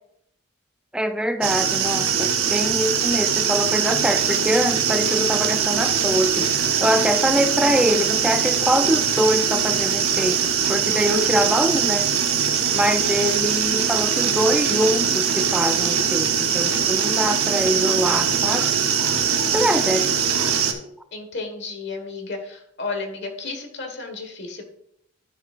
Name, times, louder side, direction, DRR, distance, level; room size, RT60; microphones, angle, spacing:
voice 1, 0.9-12.1 12.7-18.7 19.0-20.5, equal, 5° right, 8 dB, 0.4 m, -24 dB
sound 1, 1.4-20.7, right 7 dB, 85° right, 0.9 m, -22 dB
voice 2, 21.1-24.6, left 3 dB, 55° left, 4 dB, 1.4 m, -32 dB
11.5 x 6.2 x 2.5 m, 0.74 s
head